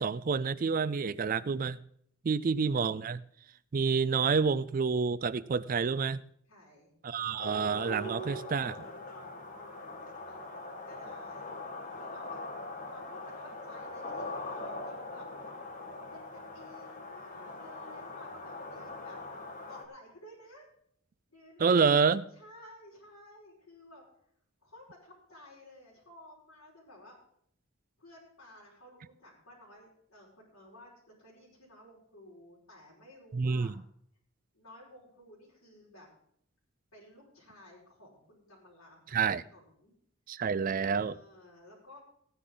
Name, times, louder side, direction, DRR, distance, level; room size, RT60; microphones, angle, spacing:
voice 1, 0.0-1.8 2.2-3.2 3.7-6.2 7.0-8.9 21.6-22.2 33.3-33.7 39.1-39.4 40.3-41.2, right 5 dB, 40° right, 0.3 m, -28 dB
voice 2, 6.5-6.9 9.1-9.9 10.2-11.5 12.0-12.4 12.9-15.3 16.1-19.2 19.7-20.7 21.3-24.0 24.6-27.2 28.0-30.9 31.2-33.7 34.5-36.1 36.9-39.9 40.8-42.0, left 1 dB, 75° left, 5.3 m, -54 dB
sound 1, 7.4-19.8, left 2 dB, 35° left, 1.5 m, -42 dB
17.0 x 9.7 x 3.9 m
head